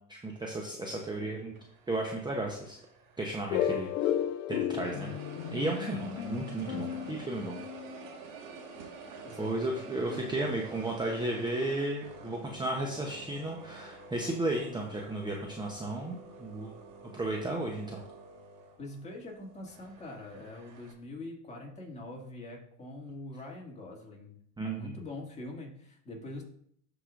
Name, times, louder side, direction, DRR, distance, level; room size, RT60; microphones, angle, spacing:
voice 1, 0.0-1.5 1.9-2.8 3.2-4.1 4.5-5.1 5.5-7.6 9.4-16.7 17.1-18.0 24.6-24.9, right 2 dB, 10° right, 0 dB, 0.8 m, -34 dB
sound 1, 1.5-4.3 4.7-20.9, right 4 dB, 55° right, 1.7 m, -49 dB
sound 2, 3.5-8.1, left 11 dB, 80° left, 0.6 m, -34 dB
voice 2, 6.7-7.1 9.2-10.8 18.8-24.4 24.6-26.4, left 2 dB, 15° left, -2 dB, 2.2 m, -44 dB
12.0 x 5.0 x 2.5 m, 0.67 s
supercardioid pair, 105°, 40 cm